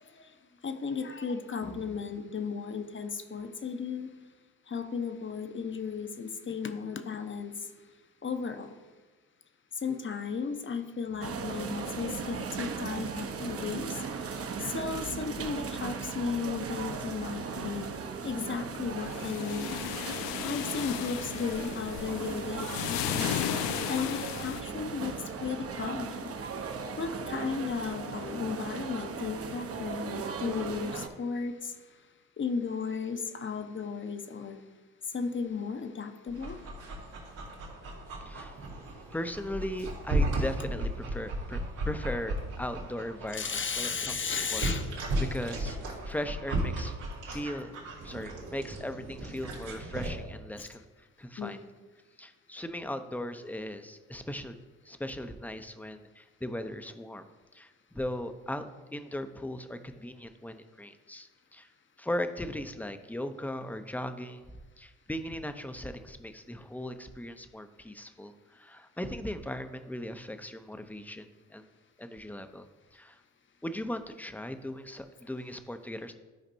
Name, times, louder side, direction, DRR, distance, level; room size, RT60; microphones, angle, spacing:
voice 1, 0.6-4.1 4.7-7.5 8.2-8.7 9.8-14.0 14.7-17.9 18.2-19.7 20.4-23.3 23.9-26.3 27.0-31.7 32.4-34.6 35.1-36.6 43.3-44.9 50.6-50.7 51.4-51.6, left 5 dB, 30° left, 8 dB, 0.9 m, -35 dB
sound 1, 11.2-31.1, right 5 dB, 40° right, 0.9 m, -37 dB
sound 2, 19.0-24.6, left 12 dB, 70° left, 0.5 m, -35 dB
Dog, 36.3-50.1, right 1 dB, 80° right, 2.2 m, -35 dB
voice 2, 38.1-43.5 43.8-44.6 45.2-47.0 47.3-47.8 48.0-51.6 52.2-54.6 54.8-57.3 57.5-61.7 62.0-71.7 72.0-73.2 73.6-76.1, left 1 dB, 5° left, 9 dB, 0.7 m, -38 dB
12.0 x 5.1 x 2.8 m, 1.3 s
hypercardioid pair, 45°, 37 cm